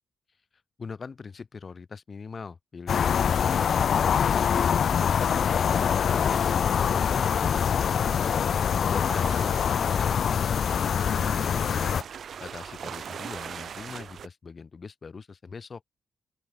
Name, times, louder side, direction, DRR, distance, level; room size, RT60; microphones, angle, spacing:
voice 1, 0.8-6.0 6.4-8.4 8.8-12.0 12.4-15.8, left 5 dB, 35° left, 1.2 m, -42 dB
sound 1, 2.9-12.0, left 7 dB, 55° left, 0.5 m, -24 dB
sound 2, 4.9-14.3, right 7 dB, 55° right, 0.7 m, -42 dB
open air
wide cardioid pair, 155°, 0 cm